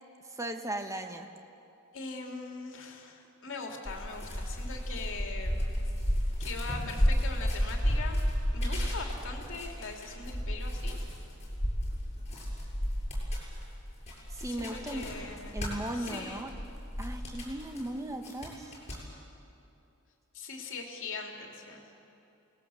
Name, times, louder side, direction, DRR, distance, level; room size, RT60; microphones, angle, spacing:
voice 1, 0.4-1.3 14.3-15.1 15.5-16.5 17.0-18.7, right 1 dB, 15° right, 5 dB, 1.4 m, -37 dB
voice 2, 1.9-5.8 6.4-8.2 8.5-11.0 14.4-15.6 15.9-16.4 20.3-21.8, left 4 dB, 60° left, 2 dB, 2.9 m, -41 dB
sound 1, 3.9-17.9 18.2-19.0, equal, 30° left, 7.0 m, -32 dB
28.5 x 19.5 x 7.1 m, 2.7 s
head